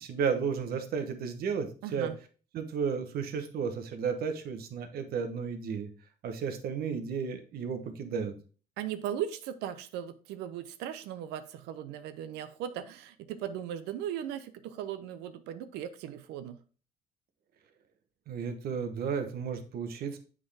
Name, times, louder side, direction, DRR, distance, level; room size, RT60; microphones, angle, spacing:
voice 1, 0.0-2.1 2.5-5.9 6.2-8.3 18.3-20.2, right 6 dB, 65° right, 7 dB, 1.0 m, -33 dB
voice 2, 1.8-2.2 8.8-16.6, right 10 dB, 90° right, 11 dB, 0.6 m, -38 dB
7.7 x 3.7 x 3.3 m, 0.37 s
cardioid pair, 110°, 17 cm